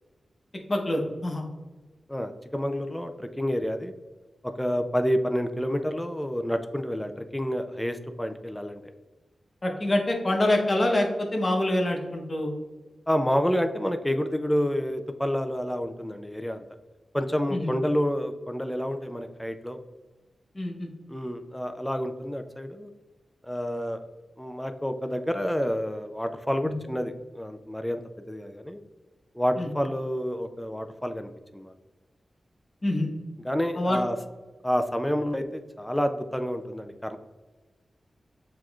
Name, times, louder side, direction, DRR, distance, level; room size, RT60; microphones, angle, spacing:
voice 1, 0.7-1.4 9.6-12.5 17.5-17.7 20.6-20.9 26.6-26.7 29.6-29.7 32.8-33.1 33.8-34.0, left 1 dB, 35° left, 2 dB, 0.9 m, -25 dB
voice 2, 2.1-3.9 4.4-8.8 13.1-16.6 17.1-19.8 21.1-22.9 23.4-24.0 24.4-28.0 28.3-28.8 29.3-31.7 33.4-34.2 34.6-37.2, equal, 5° left, 7 dB, 0.4 m, -29 dB
7.5 x 3.0 x 2.4 m, 1.3 s
wide cardioid pair, 80°, 0 cm